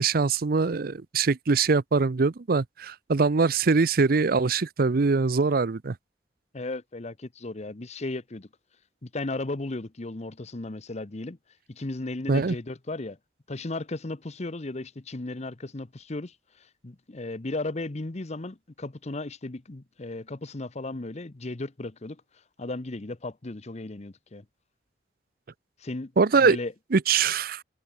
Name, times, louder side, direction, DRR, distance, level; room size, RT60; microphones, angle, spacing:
voice 1, 0.0-5.9 12.3-12.5 26.2-26.6 26.9-27.6, right 4 dB, 55° right, 0.6 m, -23 dB
voice 2, 6.5-8.5 9.0-11.4 11.7-13.2 13.5-22.2 22.6-24.4 25.8-26.7, left 2 dB, 40° left, 0.9 m, -35 dB
head